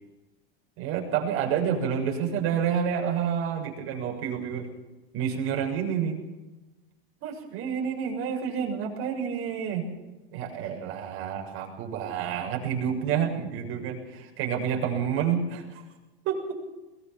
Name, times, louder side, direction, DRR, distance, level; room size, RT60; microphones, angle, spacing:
voice 1, 0.8-4.7 5.1-6.2 7.2-9.9 10.3-15.8 16.2-16.6, right 8 dB, 45° right, 0 dB, 7.0 m, -29 dB
22.0 x 20.0 x 6.1 m, 1.1 s
supercardioid pair, 130°, 31 cm